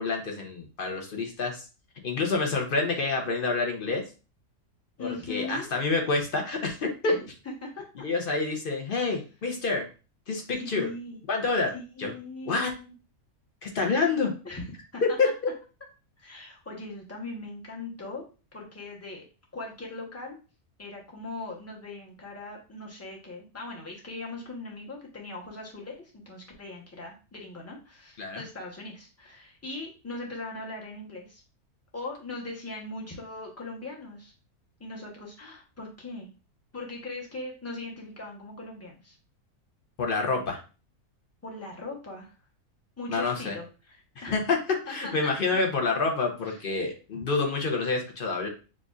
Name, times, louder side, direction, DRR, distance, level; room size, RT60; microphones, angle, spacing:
voice 1, 0.0-1.6 2.0-4.0 5.0-7.1 8.0-9.9 10.3-10.9 11.3-11.7 12.0-12.1 12.5-12.7 13.6-14.3 15.2-15.3 28.2-28.4 40.0-40.6 43.1-43.6 44.3-44.6 44.9-48.5, left 3 dB, 45° left, 2 dB, 0.8 m, -27 dB
voice 2, 5.0-5.7 7.0-7.2 7.4-8.0 9.1-9.2 10.6-11.2 11.7-12.9 14.4-14.6 14.9-15.0 16.2-18.2 18.5-19.2 19.5-20.4 20.8-31.4 31.9-34.3 34.8-36.3 36.7-39.2 41.4-42.3 43.0-44.6 44.9-45.3 46.4-46.6 47.1-47.2, left 2 dB, 15° left, -1 dB, 0.8 m, -40 dB
6.2 x 2.6 x 2.4 m, 0.33 s
omnidirectional pair, 1.5 m